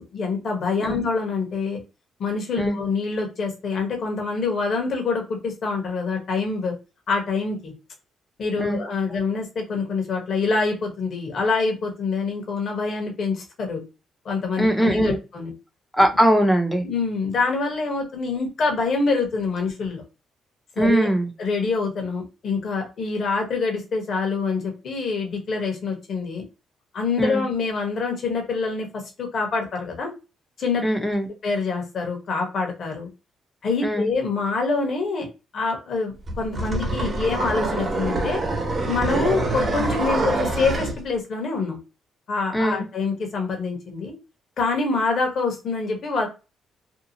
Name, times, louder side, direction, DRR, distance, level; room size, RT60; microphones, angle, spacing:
voice 1, 0.1-1.8 2.2-6.7 7.1-7.7 8.4-13.8 14.2-15.5 16.8-20.0 20.8-21.1 21.4-26.4 26.9-30.1 30.6-30.8 31.4-33.1 33.6-35.3 35.5-38.4 38.9-41.8 42.3-44.1 44.6-46.3, left 4 dB, 55° left, 2 dB, 1.0 m, -25 dB
voice 2, 14.6-15.2 16.0-16.8 20.8-21.3 27.2-27.4 30.8-31.3 33.8-34.1 42.5-42.8, equal, 10° left, 5 dB, 0.7 m, -20 dB
sound 1, 36.3-41.0, right 2 dB, 40° right, 1.0 m, -25 dB
2.7 x 2.3 x 2.7 m, 0.29 s
cardioid pair, 90°, 0 cm